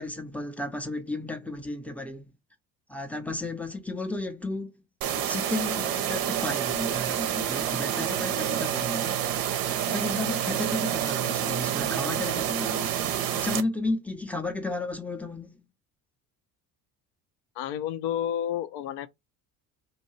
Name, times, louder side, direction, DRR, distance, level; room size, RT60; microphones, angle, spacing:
voice 1, 0.0-2.3 2.9-4.8 5.1-9.2 9.6-12.9 13.3-15.6, left 2 dB, 5° left, 0.5 m, -33 dB
sound 1, 5.0-13.6, right 10 dB, 50° right, 0.6 m, -28 dB
voice 2, 17.6-19.1, left 10 dB, 60° left, 0.6 m, -30 dB
2.7 x 2.2 x 3.0 m
hypercardioid pair, 60°, 48 cm